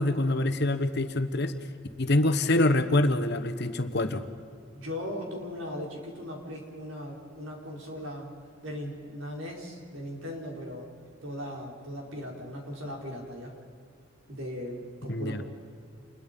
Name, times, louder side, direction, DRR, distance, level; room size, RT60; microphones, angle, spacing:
voice 1, 0.0-1.5 2.0-4.2 15.1-15.4, left 1 dB, 60° left, 10 dB, 1.3 m, -25 dB
voice 2, 4.7-8.3 8.6-10.9 11.2-13.5 14.3-15.4, equal, 85° right, 0 dB, 4.7 m, -38 dB
28.5 x 21.5 x 5.4 m, 2.4 s
head